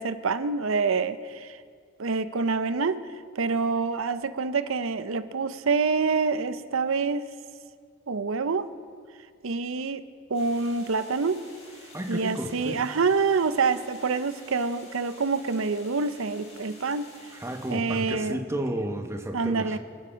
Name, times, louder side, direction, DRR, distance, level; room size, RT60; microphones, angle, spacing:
voice 1, 0.0-1.6 2.0-3.1 3.4-7.3 8.1-8.7 9.4-10.0 10.3-11.5 12.1-17.1 17.7-18.4 19.3-19.8, right 4 dB, 75° right, 12 dB, 0.7 m, -26 dB
sound 1, 10.3-17.7, left 2 dB, 35° left, 5.7 m, -50 dB
voice 2, 11.9-12.8 17.3-19.8, right 1 dB, 15° right, 5 dB, 1.1 m, -32 dB
27.5 x 9.4 x 5.1 m, 2.1 s
head